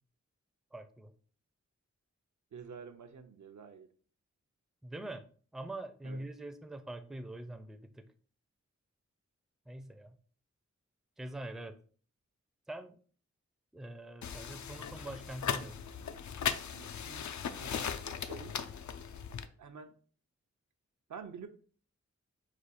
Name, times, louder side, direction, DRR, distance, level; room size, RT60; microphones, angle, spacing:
voice 1, 0.7-1.1 4.8-5.3 5.5-8.1 9.7-10.2 11.2-11.8 12.7-13.0 13.7-15.8, right 1 dB, ahead, 8 dB, 0.4 m, -44 dB
voice 2, 2.5-3.9 6.0-6.2 16.7-17.2 17.6-18.5 19.6-19.9 21.1-21.5, right 6 dB, 80° right, 7 dB, 0.6 m, -48 dB
sound 1, 14.2-19.5, left 7 dB, 75° left, 0.4 m, -38 dB
4.9 x 2.3 x 4.1 m, 0.43 s
wide cardioid pair, 80°, 29 cm